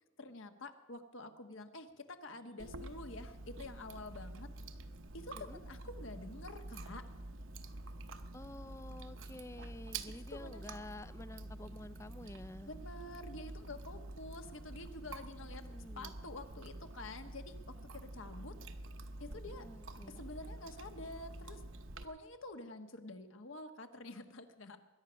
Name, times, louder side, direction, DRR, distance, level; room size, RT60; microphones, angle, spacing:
voice 1, 0.2-4.5 5.1-7.1 10.1-10.6 12.7-18.5 19.2-19.7 20.1-21.6 22.0-24.8, left 2 dB, 65° left, 7 dB, 1.3 m, -48 dB
Chewing mastication, 2.6-22.0, right 2 dB, 65° right, 0.9 m, -48 dB
voice 2, 8.3-12.7 15.4-16.1 19.6-20.2, left 1 dB, 15° left, 16 dB, 0.4 m, -50 dB
21.5 x 10.5 x 6.3 m, 1.2 s
head